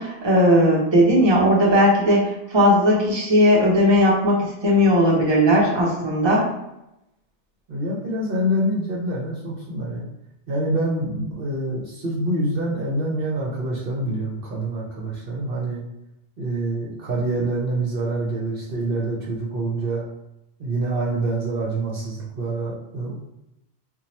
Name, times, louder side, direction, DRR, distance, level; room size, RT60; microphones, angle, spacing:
voice 1, 0.0-6.5, equal, 25° right, -4 dB, 0.7 m, -17 dB
voice 2, 7.7-10.0 10.5-15.8 16.4-20.1 20.6-23.1, right 1 dB, 60° right, -4 dB, 0.9 m, -26 dB
2.8 x 2.2 x 4.1 m, 0.87 s
omnidirectional pair, 1.1 m